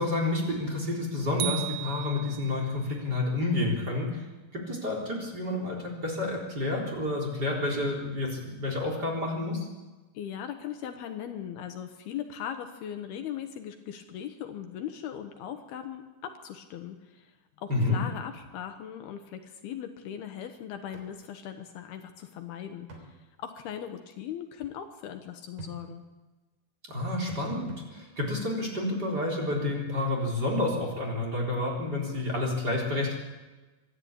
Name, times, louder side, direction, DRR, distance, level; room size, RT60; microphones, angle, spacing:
voice 1, 0.0-4.2 4.5-9.7 17.7-18.0 26.9-33.1, left 2 dB, 25° right, -1 dB, 4.0 m, -29 dB
sound 1, 1.4-2.8, right 18 dB, 75° right, 2.3 m, -35 dB
voice 2, 10.1-17.3 17.6-26.0, left 9 dB, 75° left, 6 dB, 2.9 m, -39 dB
sound 2, 20.9-21.1 21.4-21.5 22.9-23.1 25.6-25.8 27.3-27.9 29.5-29.6, right 2 dB, 50° right, 4.8 m, -44 dB
25.0 x 12.5 x 8.9 m, 1.2 s
omnidirectional pair, 4.9 m